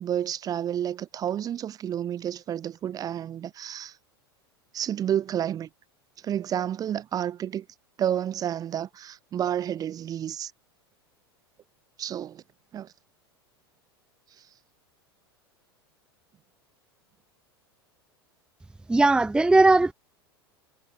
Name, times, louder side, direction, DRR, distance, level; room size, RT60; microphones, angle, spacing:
voice 1, 0.0-4.0 4.7-5.7 6.2-7.6 8.0-10.5 12.0-12.4 12.7-12.9, right 10 dB, 30° right, 0.9 m, -30 dB
voice 2, 18.9-19.9, right 2 dB, 5° right, 0.7 m, -18 dB
figure-of-eight pair, 85°, 13 cm